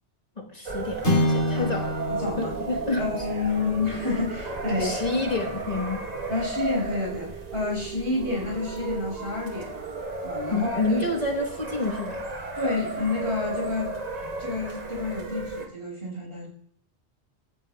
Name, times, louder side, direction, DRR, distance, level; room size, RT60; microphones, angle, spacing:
voice 1, 0.4-1.9 2.4-3.1 4.7-6.1 10.5-12.3, left 2 dB, 40° left, 1 dB, 1.2 m, -28 dB
sound 1, 0.7-15.7, right 3 dB, 40° right, 1.2 m, -34 dB
sound 2, 1.0-5.5, left 1 dB, 85° left, 2.6 m, -29 dB
voice 2, 2.1-2.5 3.0-4.9 6.3-9.7 10.2-10.8 12.6-14.0 14.4-16.5, left 3 dB, 70° right, -1 dB, 4.5 m, -29 dB
15.0 x 9.1 x 2.2 m, 0.66 s
omnidirectional pair, 1.1 m